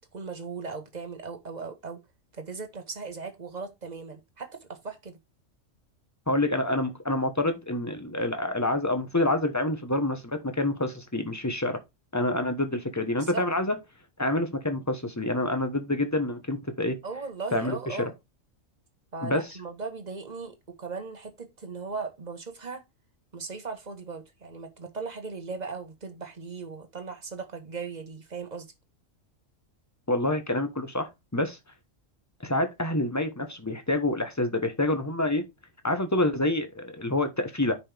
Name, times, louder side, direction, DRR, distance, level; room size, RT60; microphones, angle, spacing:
voice 1, 0.1-2.0 2.3-5.2 13.2-13.5 17.0-18.1 19.1-22.8 23.3-28.7, right 4 dB, 35° right, 1.4 m, -38 dB
voice 2, 6.3-11.8 12.1-13.8 14.2-17.0 17.5-18.1 19.2-19.4 30.1-31.6 32.4-35.4 35.8-37.8, left 1 dB, 15° left, 1.1 m, -27 dB
9.6 x 5.4 x 3.5 m
omnidirectional pair, 1.3 m